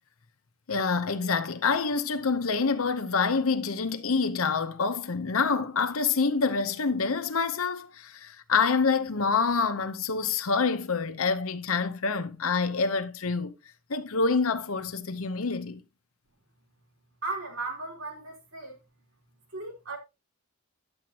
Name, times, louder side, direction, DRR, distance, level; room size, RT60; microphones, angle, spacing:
voice 1, 0.7-13.5 13.9-15.8, left 4 dB, 80° left, 0.8 m, -27 dB
voice 2, 17.2-18.7 19.5-20.0, right 3 dB, 70° right, 3.3 m, -36 dB
9.8 x 7.8 x 2.9 m
head